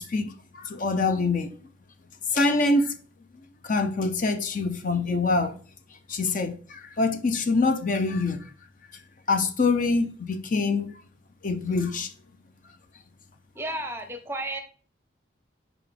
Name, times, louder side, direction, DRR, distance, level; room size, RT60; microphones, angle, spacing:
voice 1, 0.0-1.5 2.3-2.9 3.6-5.6 6.1-8.4 9.3-10.9 11.4-12.1, left 3 dB, 40° left, 0.6 m, -25 dB
voice 2, 13.5-14.6, right 1 dB, 10° right, 0.8 m, -32 dB
7.1 x 4.9 x 3.4 m
head